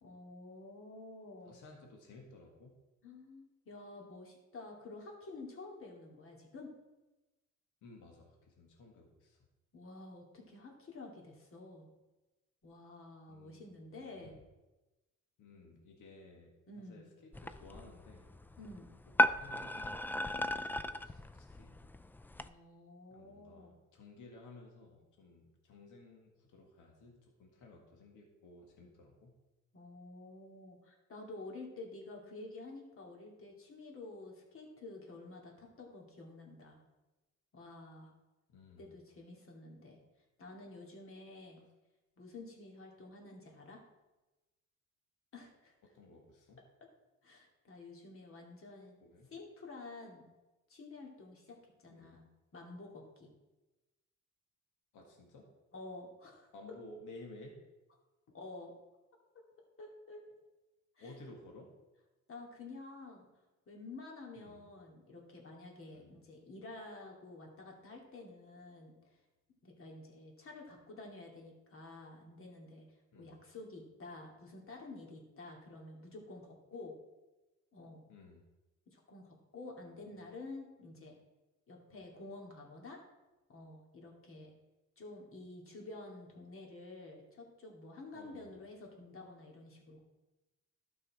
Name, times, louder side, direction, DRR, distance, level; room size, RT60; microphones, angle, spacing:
voice 1, 0.0-1.6 3.0-6.7 9.7-11.9 12.6-14.3 16.7-17.1 18.6-18.9 22.4-23.7 29.7-36.8 37.5-38.1 38.8-40.0 40.4-41.7 42.2-43.8 45.3-45.7 47.2-49.0 49.3-50.3 50.7-52.3 52.5-53.3 55.7-56.5 58.3-58.7 59.8-60.2 61.0-61.1 62.3-63.3 63.7-68.9 69.6-72.8 73.1-76.9 77.7-78.0 78.9-81.2 81.7-83.0 83.5-84.5 85.0-90.0, left 2 dB, 45° left, 0 dB, 2.6 m, -50 dB
voice 2, 1.5-2.7 7.8-9.4 13.3-13.7 14.2-14.4 15.4-16.5 16.9-18.3 19.0-21.8 23.1-29.3 38.5-39.0 45.9-46.6 49.0-49.3 51.9-52.2 54.9-55.5 56.5-57.6 61.0-61.7 64.4-64.6 65.9-66.1 73.1-73.4 78.1-78.4 80.0-80.3 88.1-88.5, left 2 dB, 80° left, 1 dB, 1.9 m, -55 dB
sound 1, 17.3-22.5, left 1 dB, 5° left, 0.3 m, -35 dB
12.5 x 5.4 x 4.8 m, 1.1 s
cardioid pair, 90°, 30 cm